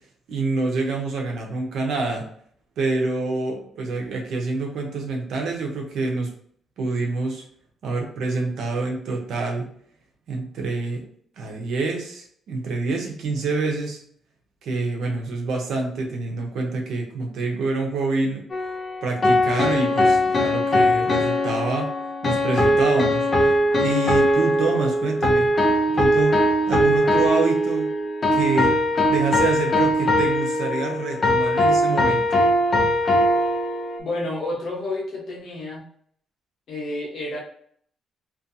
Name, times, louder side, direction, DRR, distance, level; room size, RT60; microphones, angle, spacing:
voice 1, 0.3-2.3 2.8-6.3 6.8-7.5 7.8-9.7 10.3-11.1 11.4-14.0 14.6-18.4 19.0-21.9 22.2-23.3 23.7-25.5 25.9-27.9 28.3-28.7 29.1-32.2, right 3 dB, 75° right, 1 dB, 0.6 m, -26 dB
sound 1, 18.5-34.0, left 1 dB, 30° left, 0.5 m, -20 dB
voice 2, 34.0-35.8 36.7-37.4, left 2 dB, 55° left, -4 dB, 1.0 m, -30 dB
2.5 x 2.3 x 2.6 m, 0.62 s
cardioid pair, 125°, 0 cm